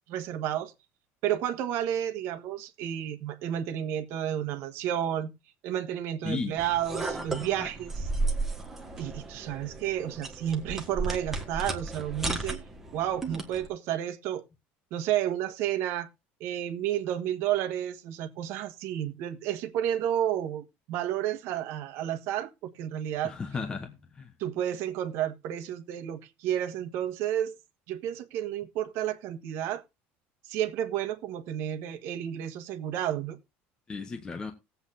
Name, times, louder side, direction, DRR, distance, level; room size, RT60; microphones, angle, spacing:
voice 1, 0.1-0.7 1.2-5.3 5.6-8.1 9.0-12.6 12.9-14.4 14.9-16.1 16.4-23.3 24.4-27.6 27.9-29.8 30.5-33.4, right 11 dB, 60° right, 1.3 m, -31 dB
sound 1, 6.6-13.7, right 3 dB, 5° right, 1.5 m, -34 dB
voice 2, 23.2-24.3 33.9-34.5, left 4 dB, 15° left, 1.0 m, -35 dB
18.5 x 8.1 x 2.6 m
cardioid pair, 170°, 5 cm